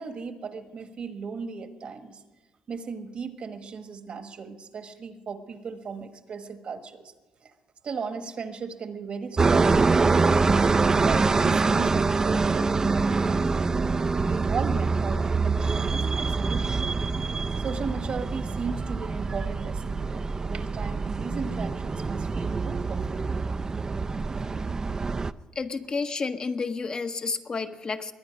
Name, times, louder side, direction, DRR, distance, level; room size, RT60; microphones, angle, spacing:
voice 1, 0.0-2.2 2.7-7.1 7.4-7.5 7.8-10.5 11.0-16.8 17.6-23.3, right 5 dB, 55° right, 8 dB, 1.3 m, -36 dB
sound 1, 9.4-25.3, right 4 dB, 25° right, 0.4 m, -25 dB
voice 2, 25.5-28.1, left 4 dB, 40° left, 7 dB, 0.8 m, -30 dB
22.0 x 9.4 x 5.2 m, 1.2 s
cardioid pair, 100°, 2 cm